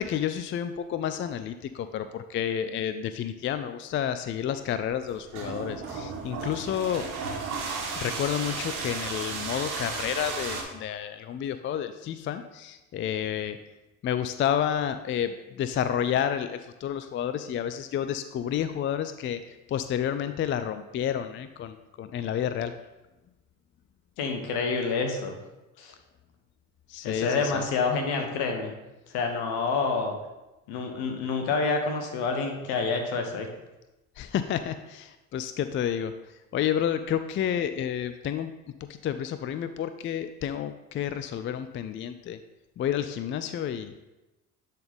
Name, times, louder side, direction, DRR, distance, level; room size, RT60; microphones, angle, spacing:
voice 1, 0.0-7.1 8.0-13.6 14.0-22.7 26.9-27.6 34.2-36.1 36.5-38.5 38.8-42.4 42.8-43.9, left 9 dB, 30° left, 11 dB, 0.4 m, -30 dB
sound 1, 4.9-10.6, right 4 dB, 80° right, 1.4 m, -34 dB
voice 2, 24.2-25.4 25.8-25.9 27.0-28.7 29.1-30.2 30.7-33.5, left 4 dB, 65° left, 4 dB, 1.3 m, -28 dB
10.5 x 4.1 x 3.6 m, 1.0 s
hypercardioid pair, 55°, 41 cm